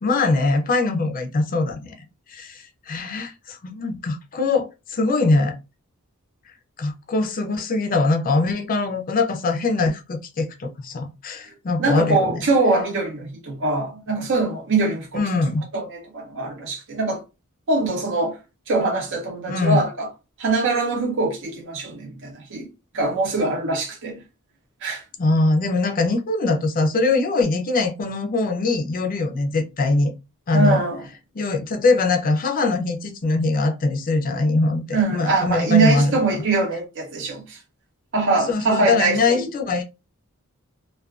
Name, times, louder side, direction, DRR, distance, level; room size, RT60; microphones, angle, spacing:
voice 1, 0.0-1.9 2.3-5.5 6.8-12.4 15.1-15.6 19.5-19.8 25.2-30.1 30.5-30.8 31.3-36.2 38.5-39.8, left 3 dB, 40° left, 0.5 m, -22 dB
voice 2, 11.8-15.2 15.7-17.2 17.7-18.4 18.7-20.1 20.4-22.7 22.9-24.2 24.8-25.0 30.5-31.0 34.9-37.6 38.1-39.4, right 3 dB, 60° right, 0.6 m, -22 dB
2.3 x 2.3 x 2.3 m
head